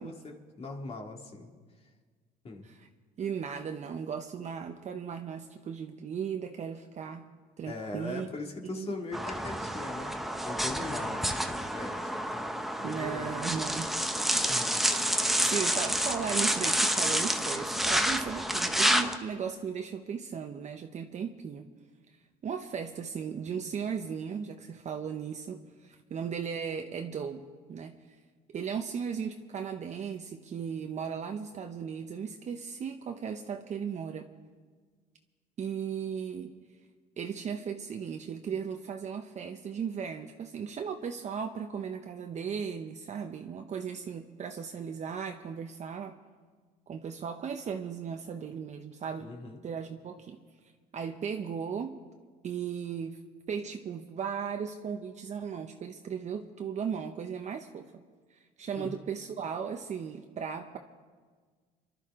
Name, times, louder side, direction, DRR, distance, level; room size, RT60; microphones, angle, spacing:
voice 1, 0.0-1.5 2.4-2.7 7.7-12.5 12.8-13.4 14.1-14.2 14.5-14.8 15.4-15.6 49.2-49.6 58.8-59.0, left 3 dB, 35° left, 1 dB, 2.3 m, -41 dB
voice 2, 3.2-7.3 7.6-8.3 8.6-8.9 12.8-13.9 14.8-15.1 15.4-21.7 22.4-28.0 28.5-34.3 35.6-36.5 37.2-46.1 46.9-49.3 49.6-50.4 50.9-51.9 52.4-53.2 53.5-58.0 58.6-60.8, right 7 dB, 45° right, 5 dB, 0.9 m, -36 dB
sound 1, 9.1-19.2, equal, ahead, 0.9 m, -29 dB
27.0 x 12.0 x 3.7 m, 1.5 s
cardioid pair, 110°, 17 cm